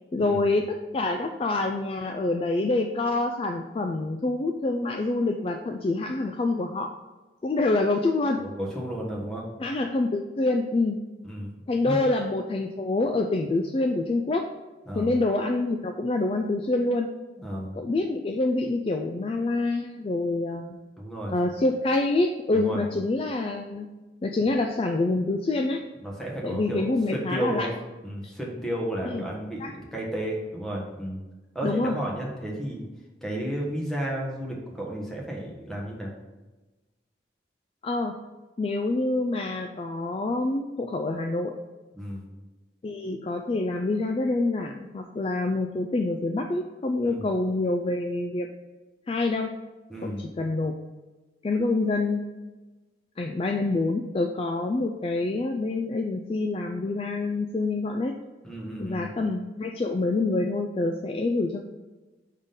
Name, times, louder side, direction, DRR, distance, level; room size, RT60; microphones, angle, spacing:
voice 1, 0.1-6.9 7.4-8.4 9.6-11.0 11.7-14.5 14.9-17.1 17.8-20.8 21.3-23.9 24.2-25.8 26.4-27.7 28.2-28.3 29.1-29.2 29.6-29.7 31.6-32.0 37.8-38.2 38.6-41.5 42.8-48.5 49.1-49.5 50.0-50.8 51.4-52.2 53.2-58.2 58.8-61.7, left 2 dB, 30° left, 4 dB, 0.3 m, -26 dB
voice 2, 8.4-9.5 11.2-11.5 11.8-12.0 14.9-15.1 17.4-17.8 21.0-21.3 22.5-22.9 26.0-27.7 28.0-31.2 31.5-32.9 33.2-36.1 41.9-42.2 47.0-47.3 49.9-50.3 58.4-59.1, right 1 dB, ahead, -3 dB, 1.2 m, -32 dB
5.6 x 3.6 x 5.2 m, 1.2 s
head